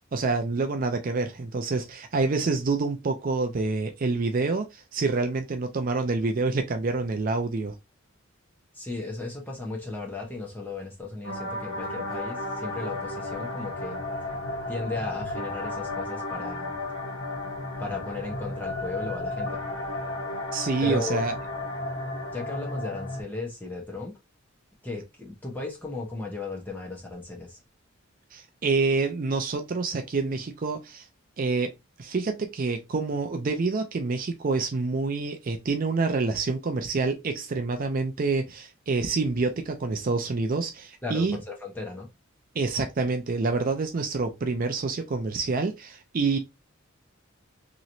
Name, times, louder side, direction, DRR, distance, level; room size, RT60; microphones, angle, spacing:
voice 1, 0.0-7.7 20.5-21.3 28.3-31.1 31.4-31.7 32.0-41.4 42.5-46.4, right 3 dB, 40° right, 0.4 m, -27 dB
voice 2, 8.7-14.1 14.7-16.8 17.8-19.6 20.8-21.2 22.3-24.2 24.8-27.6 41.0-42.1, left 3 dB, 10° left, 1.0 m, -35 dB
sound 1, 11.2-23.2, left 2 dB, 80° left, 1.2 m, -33 dB
3.0 x 3.0 x 2.6 m
head